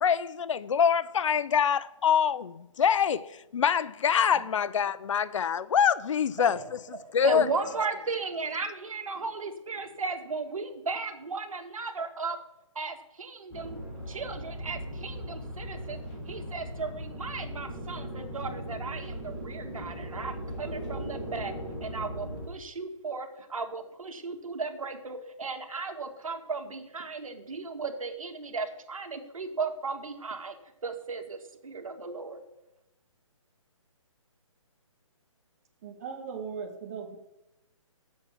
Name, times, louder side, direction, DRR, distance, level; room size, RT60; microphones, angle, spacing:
voice 1, 0.0-3.2 3.5-6.6 7.1-7.5, left 7 dB, 65° left, 0.5 m, -25 dB
voice 2, 6.4-12.4 12.8-13.8 14.1-16.0 16.3-21.5 21.8-30.6 30.8-32.4, right 4 dB, 85° right, 2.1 m, -36 dB
sound 1, 13.5-22.5, equal, 5° left, 4.3 m, -38 dB
voice 3, 35.8-37.2, right 6 dB, 25° right, 1.5 m, -38 dB
7.5 x 7.3 x 7.4 m
hypercardioid pair, 170°, 17 cm